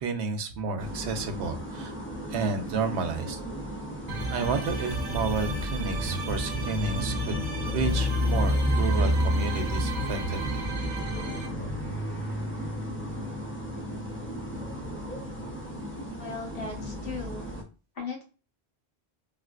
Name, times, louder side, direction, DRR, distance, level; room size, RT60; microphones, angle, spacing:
voice 1, 0.0-1.9 2.3-3.4 4.3-7.4 7.7-10.6, right 4 dB, 80° right, 7 dB, 0.9 m, -31 dB
sound 1, 0.8-17.6, left 1 dB, 15° left, 0.5 m, -32 dB
sound 2, 4.1-11.5, right 2 dB, 45° right, 0.7 m, -33 dB
voice 2, 16.2-17.5 17.9-18.2, left 4 dB, 60° left, 0 dB, 1.2 m, -37 dB
3.5 x 2.4 x 2.3 m, 0.35 s
omnidirectional pair, 1.1 m